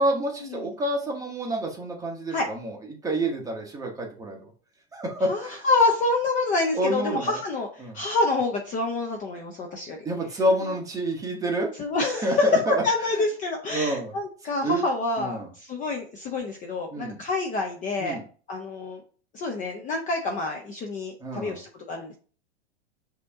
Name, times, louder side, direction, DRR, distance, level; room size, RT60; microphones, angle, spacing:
voice 1, 0.0-4.5 4.9-5.6 6.7-7.4 7.8-8.0 10.0-11.7 12.1-12.8 13.1-13.2 13.7-14.1 14.6-14.8 15.2-15.5 16.9-17.2 18.0-18.2 21.2-21.6, right 1 dB, 10° right, 0 dB, 1.1 m, -28 dB
voice 2, 5.3-10.0 11.8-18.2 18.5-19.0 19.3-22.2, left 3 dB, 25° left, 2 dB, 0.6 m, -27 dB
5.1 x 2.8 x 3.6 m, 0.41 s
hypercardioid pair, 125°, 33 cm